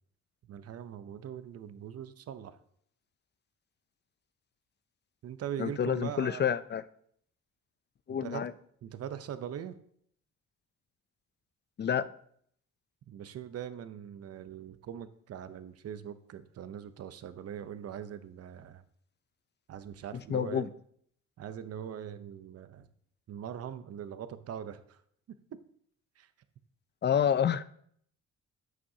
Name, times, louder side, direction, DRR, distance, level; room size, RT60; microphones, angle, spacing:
voice 1, 0.5-2.6 5.2-6.5 8.2-8.5 8.8-9.8 13.1-18.8 19.7-20.7 21.4-22.9 23.3-25.0 25.3-25.4 26.2-26.3, right 9 dB, 55° right, 0.7 m, -41 dB
voice 2, 5.6-6.8 8.1-8.5 11.8-12.1 20.1-20.7 27.0-27.6, left 8 dB, 35° left, 0.5 m, -28 dB
14.0 x 6.0 x 2.8 m
cardioid pair, 90°, 30 cm